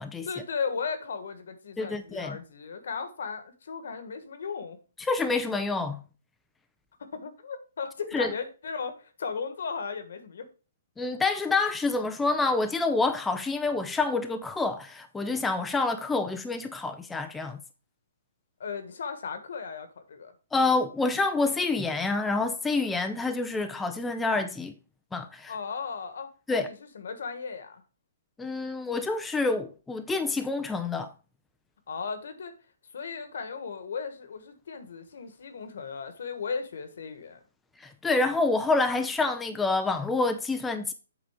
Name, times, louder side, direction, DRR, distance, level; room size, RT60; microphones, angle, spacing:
voice 1, 0.3-4.8 7.0-10.5 18.6-20.3 25.5-27.8 31.9-32.5 32.9-37.4, left 5 dB, 70° left, 1.4 m, -36 dB
voice 2, 1.8-2.4 5.0-6.0 8.1-8.3 11.0-17.6 20.5-24.7 25.1-25.5 26.5-26.7 28.4-31.1 37.8-40.9, left 3 dB, 10° left, 0.5 m, -27 dB
7.6 x 4.0 x 4.9 m
hypercardioid pair, 140°, 0 cm